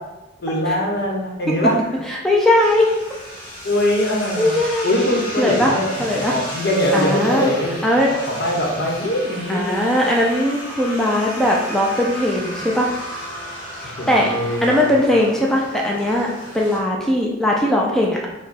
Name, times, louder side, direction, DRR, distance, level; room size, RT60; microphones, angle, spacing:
voice 1, 0.4-1.8 3.6-4.5 4.8-7.8 8.1-9.8 14.0-14.7, left 1 dB, 60° left, -2 dB, 1.0 m, -22 dB
voice 2, 2.1-2.9 4.4-5.0 5.4-5.7 6.0-6.3 6.9-7.5 7.8-8.1 9.5-12.9 13.8-16.3 16.5-18.3, left 1 dB, 5° left, -2 dB, 0.4 m, -19 dB
sound 1, 2.6-16.8, equal, 30° left, 1.5 m, -34 dB
5.0 x 2.3 x 4.1 m, 1.0 s
head